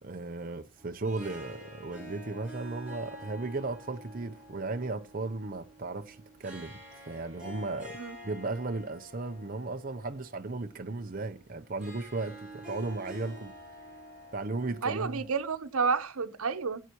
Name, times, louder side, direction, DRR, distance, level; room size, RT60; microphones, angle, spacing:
voice 1, 0.0-6.8 7.1-8.0 8.2-13.5 14.3-15.2, right 3 dB, 40° right, 0.6 m, -35 dB
Harp, 0.8-16.0, equal, 5° right, 6.6 m, -48 dB
voice 2, 14.8-16.8, right 5 dB, 85° right, 0.9 m, -30 dB
17.0 x 8.2 x 3.0 m
head